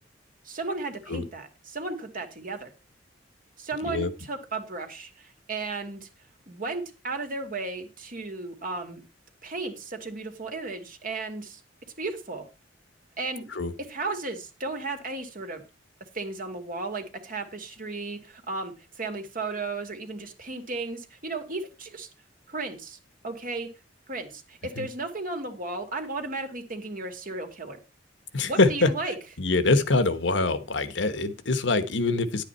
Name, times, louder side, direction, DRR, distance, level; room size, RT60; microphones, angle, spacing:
voice 1, 0.4-2.7 3.6-6.1 6.5-9.0 9.4-11.6 12.0-12.5 13.2-13.5 13.9-15.6 16.1-22.1 22.5-23.0 23.2-23.7 24.1-27.8 28.4-29.2, right 3 dB, 45° right, 2.2 m, -34 dB
voice 2, 28.3-28.9 29.4-32.4, left 3 dB, 70° left, 1.2 m, -24 dB
11.0 x 8.3 x 4.4 m
head